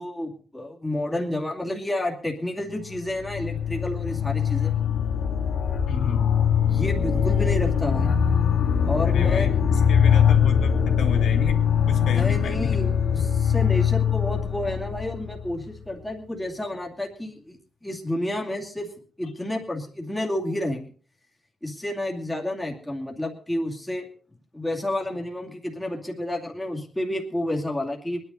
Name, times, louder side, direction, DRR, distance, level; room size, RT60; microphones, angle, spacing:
voice 1, 0.0-4.7 6.7-8.1 8.9-9.5 12.0-18.9 19.2-20.9 21.6-24.1 24.5-28.2, left 1 dB, 5° left, -1 dB, 2.4 m, -30 dB
sound 1, 2.9-15.8, left 7 dB, 70° left, 2.1 m, -22 dB
voice 2, 5.9-6.3 9.0-11.6 11.9-12.8 19.2-19.3, left 7 dB, 85° left, 4 dB, 3.2 m, -33 dB
23.0 x 10.5 x 4.1 m, 0.44 s
wide cardioid pair, 175°, 0 cm